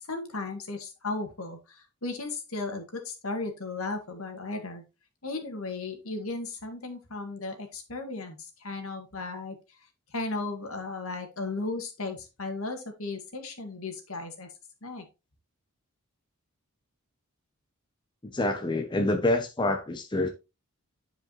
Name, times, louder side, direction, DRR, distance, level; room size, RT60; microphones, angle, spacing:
voice 1, 0.1-4.8 5.2-9.6 10.1-14.5 14.8-15.1, left 3 dB, 70° left, 1.8 m, -35 dB
voice 2, 18.2-20.3, left 2 dB, 20° left, 0.6 m, -27 dB
10.0 x 5.0 x 3.0 m
head